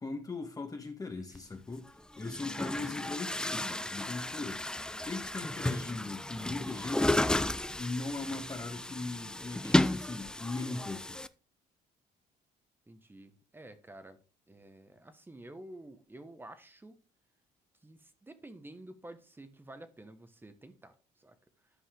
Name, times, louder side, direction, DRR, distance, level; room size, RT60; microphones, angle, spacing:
voice 1, 0.0-1.9 2.2-4.7 5.0-11.2, left 3 dB, 20° left, 1.5 m, -39 dB
Chatter / Gurgling / Tap, 1.4-1.5 2.2-11.3, left 1 dB, 5° left, 0.4 m, -33 dB
voice 2, 2.4-2.9 12.9-14.2 14.5-17.0 17.8-21.4, right 1 dB, 10° right, 1.3 m, -50 dB
11.5 x 5.5 x 3.8 m
cardioid pair, 110°, 17 cm